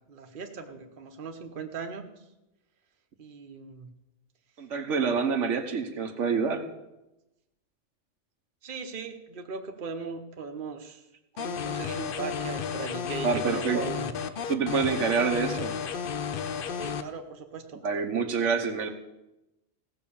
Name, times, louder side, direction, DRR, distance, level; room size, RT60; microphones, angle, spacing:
voice 1, 0.1-2.0 3.2-3.9 8.6-11.0 11.4-14.1 16.7-17.8, right 4 dB, 45° right, 5 dB, 1.1 m, -38 dB
voice 2, 4.6-6.7 13.2-13.8 14.5-15.7 17.8-18.9, right 5 dB, 80° right, 4 dB, 1.4 m, -27 dB
sound 1, 11.4-17.0, left 6 dB, 55° left, 0.8 m, -33 dB
16.0 x 6.2 x 7.0 m, 0.95 s
omnidirectional pair, 1.2 m